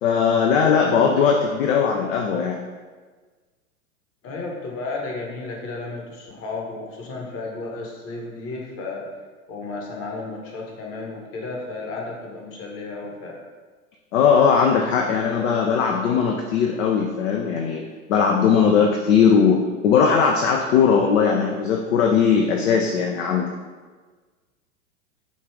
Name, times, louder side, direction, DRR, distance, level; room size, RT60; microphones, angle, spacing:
voice 1, 0.0-2.6 14.1-17.8 18.1-23.5, left 6 dB, 60° left, 1 dB, 0.6 m, -19 dB
voice 2, 4.2-9.1 9.5-13.4, left 3 dB, 30° left, -1 dB, 1.0 m, -33 dB
5.2 x 2.4 x 3.3 m, 1.4 s
figure-of-eight pair, 95°, 43 cm